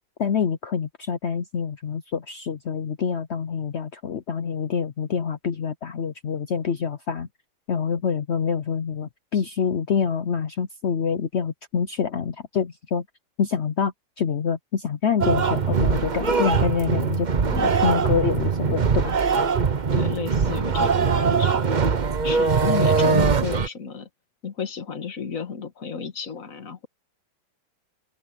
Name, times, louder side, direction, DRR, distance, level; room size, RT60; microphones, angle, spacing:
voice 1, 0.2-7.3 7.7-13.0 13.4-19.1, left 6 dB, 85° left, 0.6 m, -26 dB
sound 1, 15.2-23.7, right 5 dB, 40° right, 0.6 m, -21 dB
voice 2, 19.9-21.8 22.2-24.1 24.4-26.9, left 6 dB, 45° left, 2.0 m, -32 dB
open air
omnidirectional pair, 2.1 m